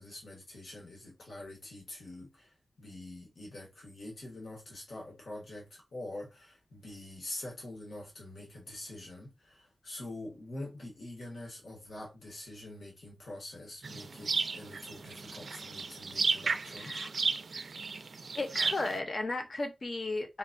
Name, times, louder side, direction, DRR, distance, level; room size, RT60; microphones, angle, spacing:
voice 1, 0.0-17.0, left 1 dB, 85° left, 1.2 m, -45 dB
sound 1, 13.8-19.0, right 4 dB, 75° right, 0.3 m, -34 dB
voice 2, 16.6-17.1 18.3-20.4, left 2 dB, 50° left, 0.7 m, -35 dB
3.9 x 2.1 x 2.5 m
wide cardioid pair, 115°, 0 cm